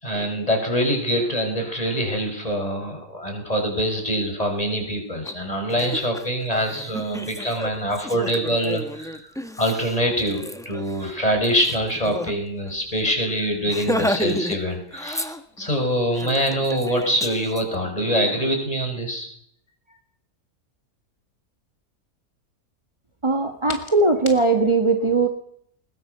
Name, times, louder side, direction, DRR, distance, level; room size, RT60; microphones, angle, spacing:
voice 1, 0.0-9.2 9.6-19.3, equal, 25° left, 3 dB, 6.1 m, -24 dB
Laughter, 5.2-5.3 5.7-12.3 12.7-12.8 13.1-13.3 13.7-14.6 14.9-15.7 16.2-17.6, equal, ahead, 1.3 m, -31 dB
voice 2, 23.2-25.3, right 3 dB, 20° right, 4 dB, 1.7 m, -19 dB
21.0 x 21.0 x 6.8 m, 0.68 s
omnidirectional pair, 1.6 m